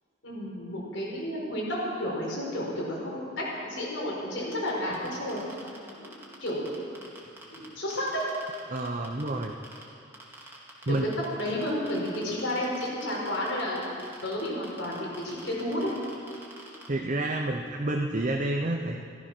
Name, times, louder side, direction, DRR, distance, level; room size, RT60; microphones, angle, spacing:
voice 1, 0.2-5.4 6.0-6.7 7.5-8.3 10.9-11.1 11.3-15.9, left 1 dB, 80° left, -4 dB, 4.6 m, -32 dB
sound 1, 4.5-7.7 7.9-9.8 10.1-16.9, right 2 dB, 15° right, 2.5 m, -46 dB
voice 2, 8.7-9.5 10.9-11.1 16.9-19.0, right 2 dB, 40° right, 2 dB, 0.8 m, -29 dB
14.5 x 13.5 x 6.2 m, 2.5 s
head